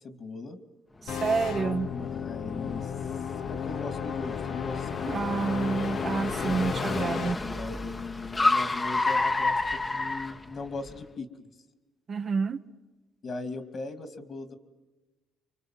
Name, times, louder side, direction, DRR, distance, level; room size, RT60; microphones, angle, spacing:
voice 1, 0.0-0.6 1.9-2.9 3.5-5.7 7.4-11.5 13.2-14.5, left 3 dB, 50° left, 2.6 m, -39 dB
sound 1, 1.1-7.3, left 8 dB, 80° left, 1.1 m, -34 dB
Car, 1.1-11.0, left 2 dB, 25° left, 1.1 m, -31 dB
voice 2, 1.1-1.9 5.0-7.4 12.1-12.6, right 5 dB, 45° right, 1.0 m, -29 dB
28.5 x 25.0 x 7.6 m
cardioid pair, 90°, 0 cm